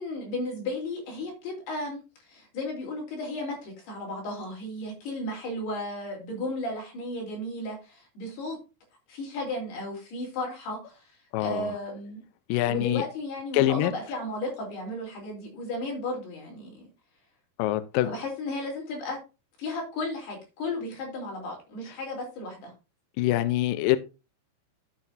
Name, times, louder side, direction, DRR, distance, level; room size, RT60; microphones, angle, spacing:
voice 1, 0.0-8.6 9.1-11.1 11.4-12.2 12.7-16.9 18.0-19.2 19.6-22.7, left 2 dB, 70° left, 5.6 m, -34 dB
voice 2, 11.3-11.7 12.5-13.0 13.5-13.9 17.6-18.1 23.2-24.0, left 15 dB, 90° left, 1.9 m, -24 dB
11.5 x 8.0 x 2.7 m
omnidirectional pair, 4.9 m